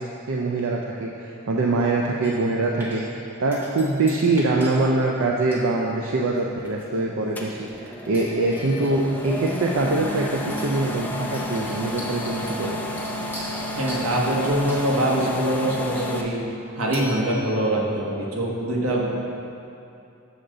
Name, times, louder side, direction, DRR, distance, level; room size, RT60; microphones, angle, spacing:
voice 1, 0.0-12.8, right 2 dB, 65° right, -1 dB, 0.5 m, -24 dB
sound 1, 2.2-2.5 2.8-3.2 3.5-4.8 5.0-5.1 5.5-5.7 6.4-7.0 7.3-7.6 8.1-9.1 9.5-10.2 10.5-10.8 11.3-15.4 16.9-17.8, left 1 dB, 10° right, 1.2 m, -41 dB
sound 2, 7.4-16.2, left 1 dB, 10° left, 0.5 m, -32 dB
voice 2, 13.7-16.4 16.8-19.2, right 1 dB, 90° right, -2 dB, 1.2 m, -23 dB
7.1 x 6.4 x 3.9 m, 2.7 s
head